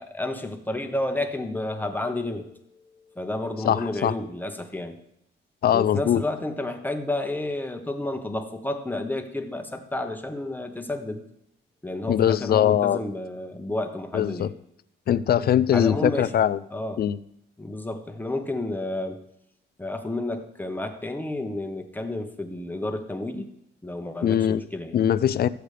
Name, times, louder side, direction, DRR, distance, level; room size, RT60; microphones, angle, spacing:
voice 1, 0.0-2.5 2.8-5.0 5.7-11.2 11.8-14.5 15.7-16.3 16.7-17.0 17.6-19.2 19.8-23.5 23.8-25.0, left 2 dB, 10° left, 5 dB, 1.1 m, -31 dB
voice 2, 3.6-4.1 5.6-6.2 12.1-13.0 14.1-14.5 15.1-16.6 17.0-17.2 24.2-24.6 24.9-25.5, left 10 dB, 50° left, 15 dB, 0.5 m, -21 dB
14.0 x 8.0 x 3.4 m, 0.76 s
cardioid pair, 90°, 20 cm